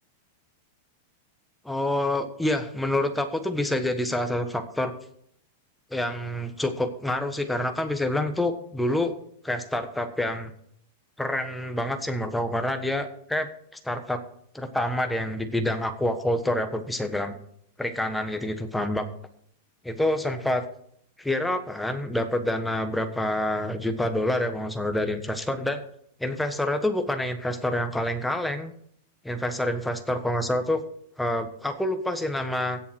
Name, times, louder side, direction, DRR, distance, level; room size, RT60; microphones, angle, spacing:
voice 1, 1.6-4.9 5.9-9.1 9.4-10.5 11.2-13.5 13.8-14.2 14.5-17.3 17.8-19.1 19.8-20.6 21.2-25.8 26.2-28.7 29.2-30.8 31.2-32.8, left 1 dB, 5° left, 7 dB, 1.3 m, -27 dB
16.5 x 7.1 x 4.6 m, 0.67 s
supercardioid pair, 150°, 0 cm